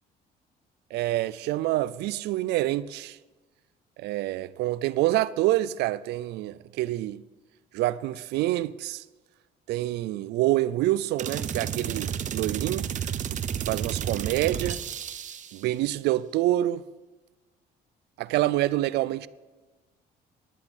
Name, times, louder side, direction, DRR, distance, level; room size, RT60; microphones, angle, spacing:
voice 1, 0.9-3.2 4.0-7.2 7.7-9.0 9.7-12.9 13.6-14.8 15.5-16.9 18.2-19.3, right 15 dB, 80° right, 0.5 m, -27 dB
sound 1, 11.2-15.6, right 8 dB, 45° right, 0.8 m, -31 dB
12.0 x 10.0 x 5.3 m
cardioid pair, 110°, 17 cm